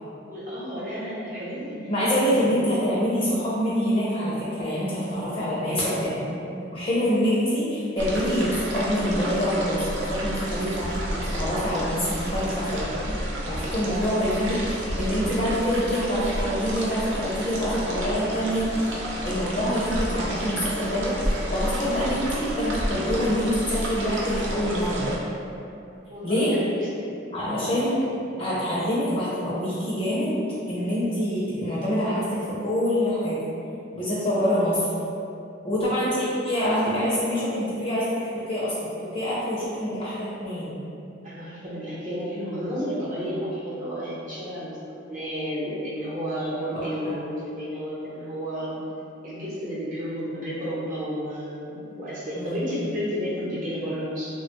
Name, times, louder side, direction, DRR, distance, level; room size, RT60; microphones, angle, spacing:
voice 1, 0.2-2.8 5.6-6.1 26.1-27.1 27.4-27.8 41.2-44.8 45.1-48.8 49.2-54.3, equal, 45° right, -9 dB, 0.8 m, -32 dB
voice 2, 1.9-6.3 6.7-13.2 13.5-19.0 19.2-21.2 21.5-25.1 26.2-26.5 27.3-28.1 28.4-30.4 30.7-33.4 33.9-34.9 35.6-40.8 46.7-47.1 52.3-52.6, equal, 30° left, -9 dB, 0.5 m, -26 dB
sound 1, 8.0-25.2, right 1 dB, 80° right, 0.5 m, -31 dB
3.0 x 2.1 x 2.9 m, 2.7 s
head